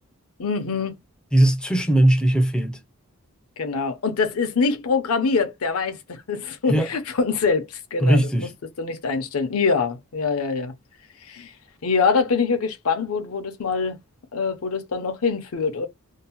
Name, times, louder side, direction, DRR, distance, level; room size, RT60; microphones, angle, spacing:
voice 1, 0.4-0.9 3.6-8.5 8.8-10.7 11.2-11.5 11.8-14.0 14.3-15.9, left 5 dB, 75° left, 0.6 m, -24 dB
voice 2, 1.3-2.8 6.7-6.9 8.0-8.5, right 1 dB, 5° left, 0.3 m, -19 dB
2.6 x 2.0 x 2.8 m
head